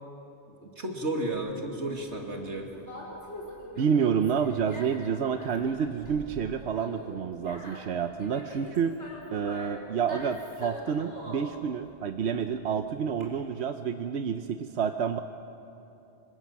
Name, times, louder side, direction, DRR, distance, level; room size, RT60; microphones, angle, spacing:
voice 1, 0.6-2.7, right 1 dB, 90° right, 1 dB, 3.0 m, -33 dB
Conversation, 1.3-13.2, equal, 80° left, 5.3 m, -44 dB
voice 2, 3.8-8.9 9.3-15.2, right 7 dB, 75° right, 8 dB, 1.1 m, -29 dB
25.5 x 25.0 x 7.4 m, 2.9 s
omnidirectional pair, 1.2 m